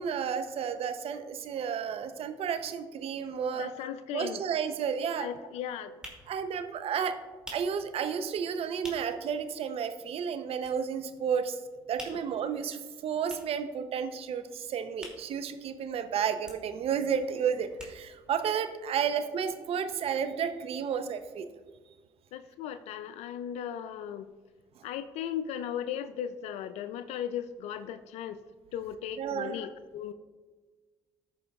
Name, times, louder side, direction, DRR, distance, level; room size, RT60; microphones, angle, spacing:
voice 1, 0.0-3.7 4.1-5.3 6.3-7.2 7.5-11.6 11.9-21.5 29.2-29.5, right 7 dB, 60° right, 9 dB, 0.7 m, -32 dB
voice 2, 3.5-4.4 5.2-5.9 22.3-24.3 24.8-28.4 28.7-30.1, left 9 dB, 75° left, 12 dB, 0.4 m, -37 dB
sound 1, 4.2-4.3 4.6-9.3 9.6-9.7 10.0-11.2 11.5-16.0 16.3-18.4 18.7-18.8 18.9-19.0, equal, 5° right, 2.5 m, -49 dB
15.0 x 5.4 x 2.4 m, 1.4 s
supercardioid pair, 60°, 11 cm